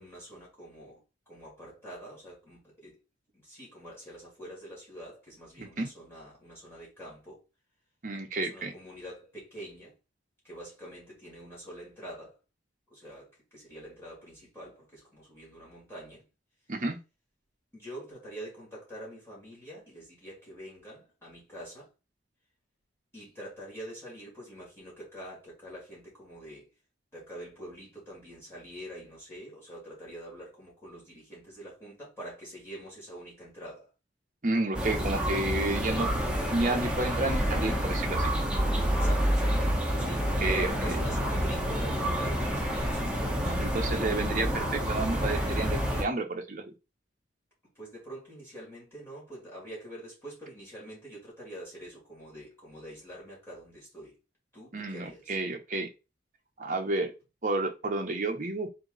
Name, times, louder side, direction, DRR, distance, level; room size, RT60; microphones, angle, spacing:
voice 1, 0.0-3.0 3.3-7.4 8.4-9.9 10.4-12.4 12.9-16.3 17.7-21.9 23.1-26.7 27.1-33.9 38.9-39.7 40.0-43.8 47.8-54.2 54.5-55.4, equal, 15° left, 2.1 m, -45 dB
voice 2, 5.6-5.9 8.0-8.7 16.7-17.0 34.4-36.1 36.5-38.3 40.4-40.7 43.5-46.7 54.7-55.9 56.6-57.1 57.4-58.7, right 2 dB, 40° right, 0.8 m, -31 dB
sound 1, 34.7-46.0, equal, 5° right, 0.8 m, -28 dB
4.0 x 2.9 x 3.8 m
head